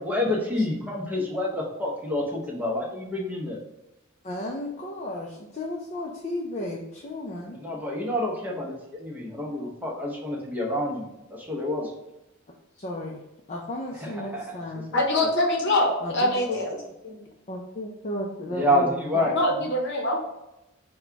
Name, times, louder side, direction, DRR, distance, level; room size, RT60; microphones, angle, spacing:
voice 1, 0.0-3.6 7.5-11.9 14.0-14.4 15.1-15.3 16.4-16.8 18.5-19.3, left 1 dB, 10° right, -3 dB, 0.8 m, -28 dB
voice 2, 4.2-7.6 12.7-13.2 13.5-14.9 16.0-16.4 17.5-19.2 19.6-19.7, left 1 dB, 35° left, -3 dB, 0.5 m, -34 dB
voice 3, 14.9-16.8 17.0-17.2 19.3-20.2, left 1 dB, 55° left, 1 dB, 0.9 m, -24 dB
4.2 x 2.3 x 4.6 m, 0.94 s
head